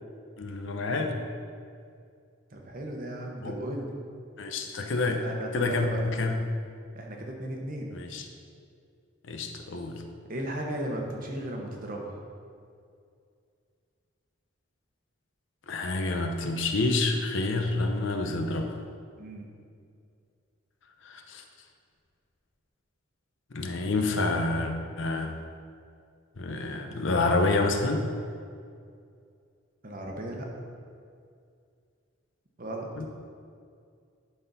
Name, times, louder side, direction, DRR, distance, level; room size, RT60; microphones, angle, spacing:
voice 1, 0.4-1.2 3.4-3.5 4.4-5.2 5.5-6.4 7.9-8.2 9.3-10.0 15.7-18.7 21.0-21.4 23.5-25.4 26.4-28.1 33.0-33.1, left 2 dB, 60° left, 4 dB, 0.7 m, -28 dB
voice 2, 2.5-3.9 5.2-6.0 6.9-8.0 10.3-12.2 18.3-18.4 19.2-19.5 29.8-30.7 32.6-32.9, right 1 dB, 40° right, 0 dB, 1.0 m, -36 dB
11.5 x 4.2 x 4.0 m, 2.3 s
head